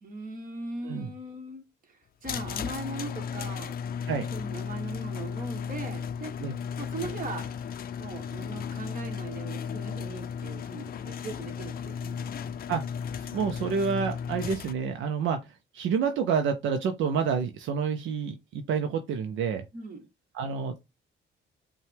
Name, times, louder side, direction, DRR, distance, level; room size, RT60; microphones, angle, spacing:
voice 1, 0.0-3.8 4.3-6.3 6.8-7.5 8.0-12.6 19.7-20.1, right 2 dB, 45° right, 1.4 m, -39 dB
sound 1, 2.2-14.7, left 7 dB, 50° left, 0.5 m, -35 dB
voice 2, 13.1-19.6 20.3-20.8, right 6 dB, 75° right, 0.5 m, -29 dB
5.5 x 2.2 x 3.4 m
cardioid pair, 90°, 20 cm